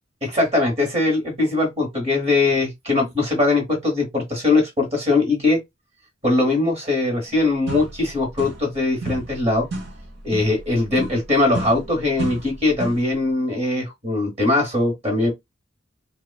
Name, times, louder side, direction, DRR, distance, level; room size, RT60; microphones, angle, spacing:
voice 1, 0.2-5.6 6.2-9.7 10.2-15.3, left 2 dB, 35° right, 1.2 m, -21 dB
sound 1, 7.3-7.4 7.7-8.8 9.0-13.1, right 1 dB, 60° right, 0.8 m, -33 dB
3.0 x 2.3 x 2.3 m
head